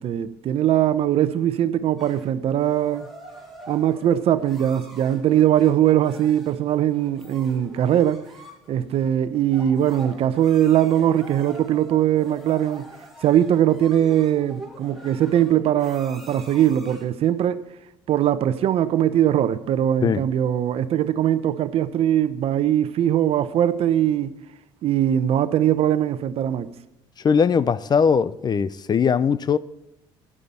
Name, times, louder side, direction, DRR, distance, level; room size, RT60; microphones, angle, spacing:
voice 1, 0.0-3.1 3.7-8.2 8.7-12.9 13.2-17.6 18.1-24.3 24.8-26.7, right 11 dB, 60° right, 0.9 m, -21 dB
sound 1, 2.0-17.2, right 1 dB, ahead, 3.9 m, -44 dB
voice 2, 27.2-29.6, left 6 dB, 35° left, 0.6 m, -20 dB
12.0 x 9.9 x 4.3 m
supercardioid pair, 75°, 11 cm